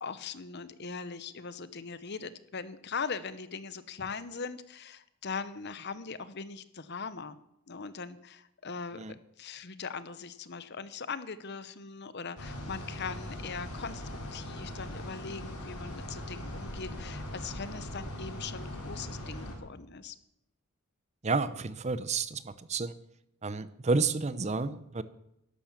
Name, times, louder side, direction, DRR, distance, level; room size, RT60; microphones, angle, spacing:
voice 1, 0.0-7.4 7.7-9.0 9.4-14.0 14.3-20.2, left 5 dB, 50° left, 14 dB, 0.9 m, -40 dB
sound 1, 12.4-19.5, left 1 dB, 90° left, 3.8 m, -40 dB
voice 2, 21.2-22.9 23.4-25.0, right 4 dB, 30° right, 15 dB, 0.6 m, -30 dB
11.5 x 11.5 x 7.3 m, 0.81 s
head